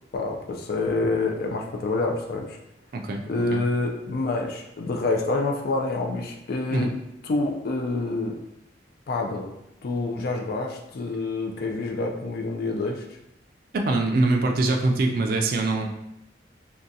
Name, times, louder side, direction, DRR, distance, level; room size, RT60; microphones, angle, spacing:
voice 1, 0.1-2.6 3.3-6.9 7.2-8.4 9.1-9.5 9.8-13.0, left 3 dB, 55° left, 1 dB, 0.4 m, -27 dB
voice 2, 13.7-15.8, right 2 dB, 55° right, 3 dB, 0.4 m, -23 dB
3.7 x 2.2 x 2.7 m, 0.85 s
head